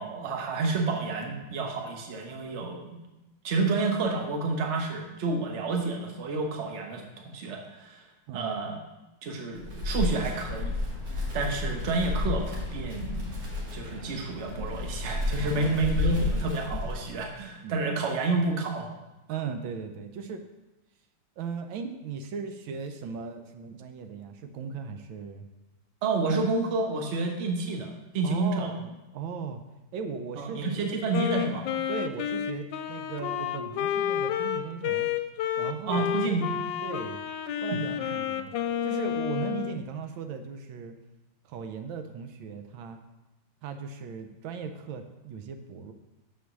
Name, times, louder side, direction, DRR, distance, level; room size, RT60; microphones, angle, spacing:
voice 1, 0.0-3.0 3.4-8.0 8.3-8.8 9.2-10.8 11.3-13.4 13.7-18.9 26.0-28.7 30.4-31.7 35.9-36.5, right 3 dB, 45° right, 2 dB, 1.0 m, -29 dB
Wind, 9.5-17.3, left 3 dB, 60° right, 2.2 m, -32 dB
voice 2, 15.4-15.8 16.1-16.2 16.7-16.8 17.6-17.8 19.3-20.4 21.4-25.5 28.2-29.6 29.9-30.6 31.9-35.1 35.6-36.1 36.8-37.2 37.6-38.5 38.8-40.9 41.4-43.0 43.6-45.9, right 6 dB, 80° right, 7 dB, 1.4 m, -37 dB
Wind instrument woodwind instrument, 31.1-39.8, left 10 dB, 75° left, 1.2 m, -30 dB
6.9 x 4.6 x 6.0 m, 1.0 s
omnidirectional pair, 2.1 m